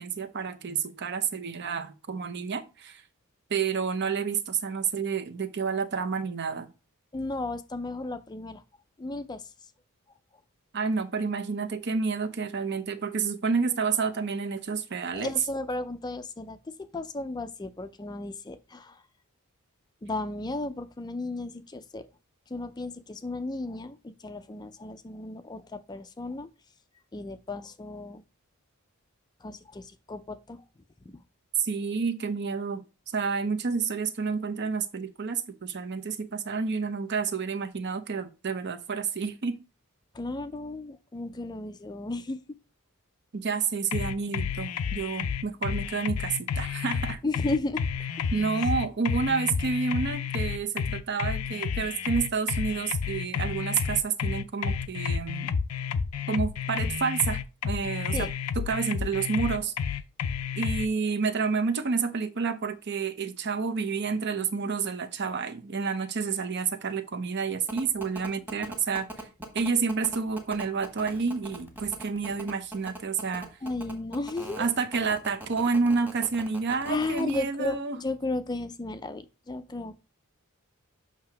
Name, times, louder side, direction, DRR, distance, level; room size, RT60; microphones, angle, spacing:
voice 1, 0.0-3.0 3.5-6.7 10.7-15.3 31.6-39.6 43.3-47.2 48.3-55.5 56.3-58.3 58.6-59.7 60.6-69.1 69.5-73.5 74.6-78.0, right 5 dB, 50° right, 0.7 m, -29 dB
voice 2, 7.1-8.6 9.0-9.5 15.1-19.0 20.0-22.1 22.5-26.5 27.1-28.2 29.4-30.6 31.1-31.2 40.1-42.4 47.2-47.8 58.1-58.3 73.6-74.7 76.9-80.0, left 2 dB, 20° left, 0.4 m, -34 dB
sound 1, 43.9-60.9, left 6 dB, 85° left, 0.5 m, -30 dB
sound 2, 67.7-77.4, right 1 dB, 10° right, 1.3 m, -40 dB
7.5 x 2.9 x 5.8 m
head